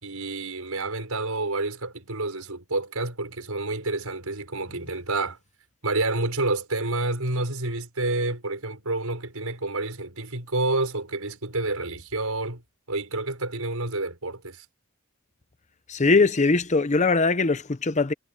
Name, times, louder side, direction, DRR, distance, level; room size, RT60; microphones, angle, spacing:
voice 1, 0.0-5.4 5.8-12.6 12.9-14.7, right 2 dB, 80° right, 5.6 m, -29 dB
voice 2, 15.9-18.1, left 3 dB, 35° left, 0.8 m, -21 dB
head